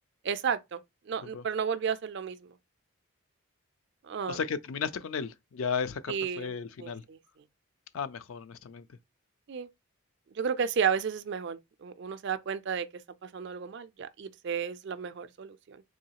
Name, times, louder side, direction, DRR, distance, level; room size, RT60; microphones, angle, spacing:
voice 1, 0.2-0.8 1.1-2.4 4.0-4.4 6.1-6.5 6.8-7.2 9.5-9.7 10.3-12.9 13.2-15.8, right 7 dB, 50° right, 0.4 m, -32 dB
voice 2, 4.3-7.0 7.9-8.8, left 6 dB, 65° left, 0.4 m, -34 dB
3.8 x 3.0 x 2.8 m
head